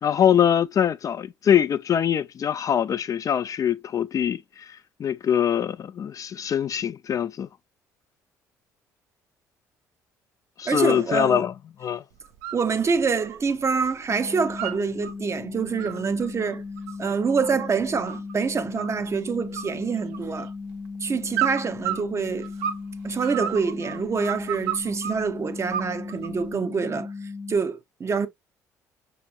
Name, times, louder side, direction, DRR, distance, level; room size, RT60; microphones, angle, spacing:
voice 1, 0.0-4.7 5.0-7.5 10.6-11.5 11.8-12.0, left 9 dB, 40° left, 0.3 m, -23 dB
voice 2, 10.6-11.4 12.5-16.6 17.0-20.5 21.0-22.5 23.0-27.1 27.5-28.3, right 5 dB, 35° right, 0.6 m, -26 dB
sound 1, 12.2-12.6 13.0-13.9 14.2-15.1 15.6-18.3 18.8-19.2 19.5-20.5 21.3-22.9 23.2-25.2 25.7-26.4, right 10 dB, 75° right, 0.6 m, -32 dB
sound 2, 14.1-27.6, left 4 dB, 10° left, 0.7 m, -37 dB
5.8 x 2.9 x 2.4 m
hypercardioid pair, 55°, 9 cm